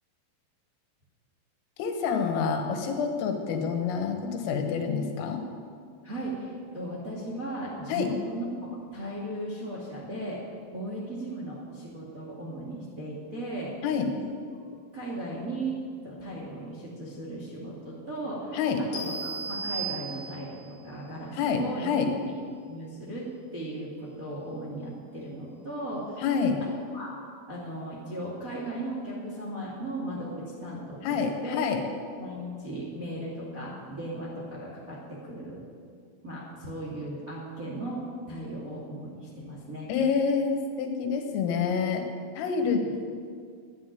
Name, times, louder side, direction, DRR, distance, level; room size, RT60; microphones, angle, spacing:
voice 1, 1.8-5.4 7.9-8.1 13.8-14.1 18.5-18.8 21.3-22.1 26.2-26.6 31.0-31.8 39.9-42.1 42.4-43.0, left 6 dB, 90° left, 4 dB, 4.1 m, -27 dB
voice 2, 6.0-10.4 10.7-13.8 14.2-14.3 14.9-21.9 22.2-22.3 22.7-26.2 26.6-27.1 27.5-31.6 32.2-35.6 36.2-38.0 38.3-39.9, right 1 dB, 35° right, -4 dB, 1.4 m, -37 dB
sound 1, 18.9-20.7, right 4 dB, 50° left, 2.2 m, -35 dB
12.0 x 10.5 x 9.3 m, 2.2 s
omnidirectional pair, 5.8 m